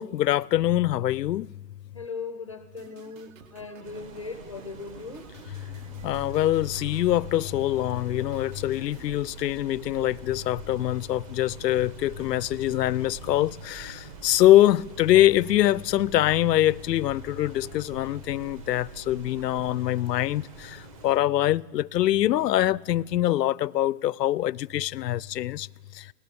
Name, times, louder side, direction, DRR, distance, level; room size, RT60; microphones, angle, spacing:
voice 1, 0.0-1.5 6.0-20.8 21.0-25.7 26.0-26.1, left 13 dB, 85° left, 0.6 m, -24 dB
voice 2, 1.9-5.2, left 4 dB, 20° left, 0.5 m, -38 dB
sound 1, 2.8-9.1, right 6 dB, 55° right, 1.6 m, -52 dB
sound 2, 3.8-21.2, right 4 dB, 20° right, 1.0 m, -47 dB
sound 3, 6.0-19.7, right 4 dB, 40° right, 6.5 m, -47 dB
21.5 x 18.0 x 6.9 m
hypercardioid pair, 170°, 48 cm